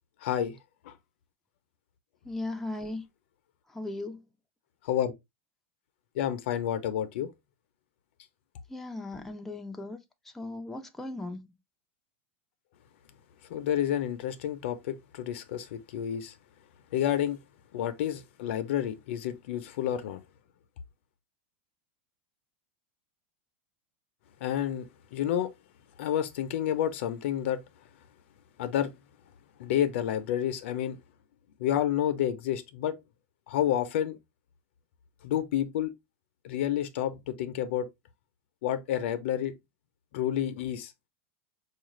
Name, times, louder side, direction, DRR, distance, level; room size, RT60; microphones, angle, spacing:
voice 1, 0.2-0.6 0.9-1.0 4.8-5.1 6.2-7.3 13.5-16.3 16.9-17.4 17.7-20.2 24.4-25.5 26.0-27.6 28.6-28.9 29.6-31.0 31.6-32.9 33.5-34.2 35.2-35.9 36.4-37.9 38.6-39.5 40.1-40.9, left 10 dB, 70° left, 0.5 m, -29 dB
voice 2, 2.3-3.1 3.7-4.2 8.7-10.0 10.3-11.5, left 2 dB, 5° left, 0.4 m, -37 dB
4.5 x 2.4 x 3.0 m
supercardioid pair, 160°, 7 cm